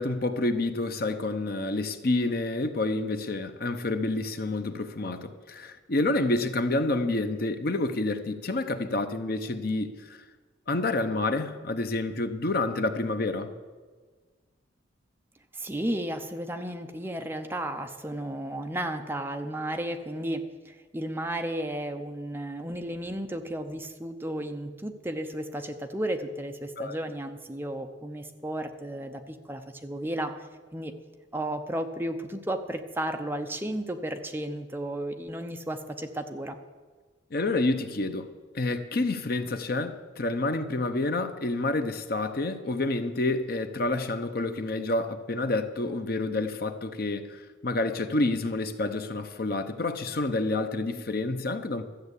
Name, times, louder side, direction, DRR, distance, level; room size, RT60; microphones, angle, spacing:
voice 1, 0.0-10.2 10.7-13.5 26.8-27.0 37.3-38.3 38.5-51.9, left 2 dB, 55° left, 8 dB, 0.8 m, -28 dB
voice 2, 15.5-30.9 31.3-36.6, right 1 dB, 10° right, 5 dB, 0.7 m, -33 dB
13.5 x 7.8 x 8.2 m, 1.4 s
head